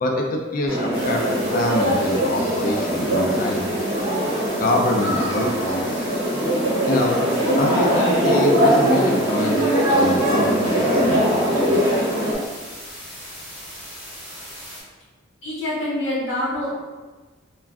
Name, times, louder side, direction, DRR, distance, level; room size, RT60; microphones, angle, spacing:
voice 1, 0.0-3.8 4.5-6.0 6.9-7.2 7.5-11.9, left 1 dB, 40° left, 1 dB, 0.4 m, -25 dB
sound 1, 0.7-12.3, equal, 85° right, 1.0 m, -21 dB
sound 2, 0.9-14.8, equal, 5° left, 1.3 m, -38 dB
voice 2, 15.4-16.7, left 1 dB, 65° left, -8 dB, 0.8 m, -25 dB
2.3 x 2.2 x 3.4 m, 1.3 s
head